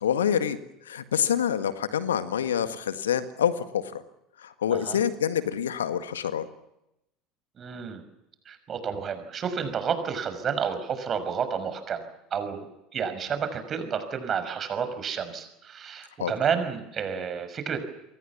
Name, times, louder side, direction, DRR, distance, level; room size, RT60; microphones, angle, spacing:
voice 1, 0.0-0.6 0.9-4.0 4.4-6.5 16.2-16.3, left 9 dB, 80° left, 11 dB, 1.7 m, -26 dB
voice 2, 7.6-8.0 8.5-12.1 12.3-17.8, right 7 dB, 35° right, 9 dB, 5.8 m, -30 dB
28.5 x 23.5 x 7.3 m, 0.86 s
figure-of-eight pair, 70°, 0 cm